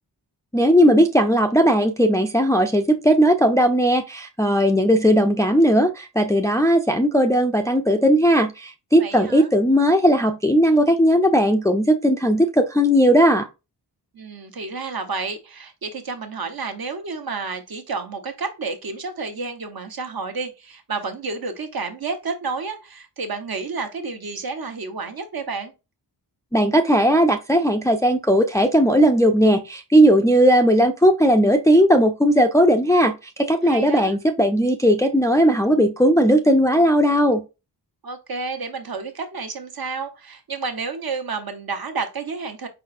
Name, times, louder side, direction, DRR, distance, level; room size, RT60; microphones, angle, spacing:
voice 1, 0.5-13.5 26.5-37.4, equal, 5° left, 0.5 m, -17 dB
voice 2, 9.0-9.5 14.1-25.7 33.6-34.2 38.0-42.7, right 4 dB, 60° right, 1.2 m, -30 dB
5.0 x 4.1 x 2.5 m
wide cardioid pair, 100°, 42 cm